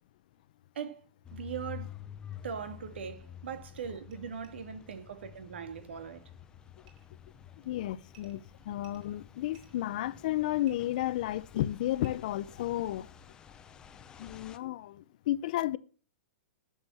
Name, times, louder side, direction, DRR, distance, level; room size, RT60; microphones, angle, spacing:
voice 1, 0.8-1.1 1.3-1.9 2.4-6.3, right 7 dB, 80° right, 2.2 m, -40 dB
sound 1, 1.2-14.6, left 10 dB, 15° left, 0.7 m, -50 dB
sound 2, 3.4-3.5 3.7-3.8 4.1-4.2 4.4-4.5 6.9-7.1 8.1-8.4 8.8-9.8 10.6-10.7 12.0-12.1, right 9 dB, 50° right, 3.8 m, -61 dB
voice 2, 7.6-13.1 14.2-15.8, left 14 dB, 45° left, 0.6 m, -32 dB
11.5 x 7.3 x 8.4 m
hypercardioid pair, 165°, 6 cm